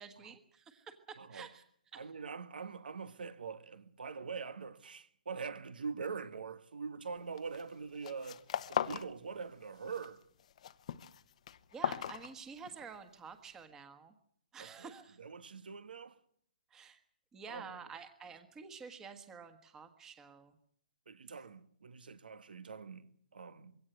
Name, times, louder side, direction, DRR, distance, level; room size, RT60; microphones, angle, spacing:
voice 1, 0.0-1.6 1.9-2.1 11.7-14.1 14.5-15.2 16.7-17.0 17.3-20.6, right 6 dB, 10° right, 1.5 m, -50 dB
voice 2, 1.9-8.4 8.7-10.2 14.6-14.9 15.2-16.2 17.5-17.8 21.1-23.8, right 5 dB, 80° right, 1.9 m, -44 dB
sound 1, 7.4-7.7 8.0-9.1 9.4-10.1 10.4-12.9, left 9 dB, 45° left, 1.0 m, -38 dB
22.5 x 17.0 x 8.1 m
hypercardioid pair, 165°, 5 cm